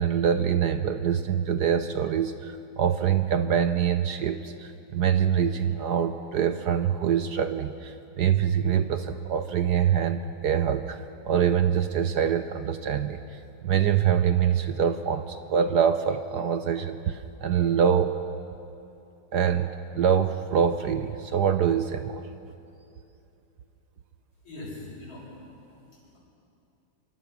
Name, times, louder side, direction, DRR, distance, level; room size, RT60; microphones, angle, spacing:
voice 1, 0.0-18.2 19.3-22.2, right 8 dB, 65° right, 9 dB, 1.1 m, -25 dB
voice 2, 24.3-26.2, left 2 dB, 75° left, -11 dB, 7.1 m, -43 dB
24.5 x 24.0 x 6.0 m, 2.7 s
omnidirectional pair, 2.3 m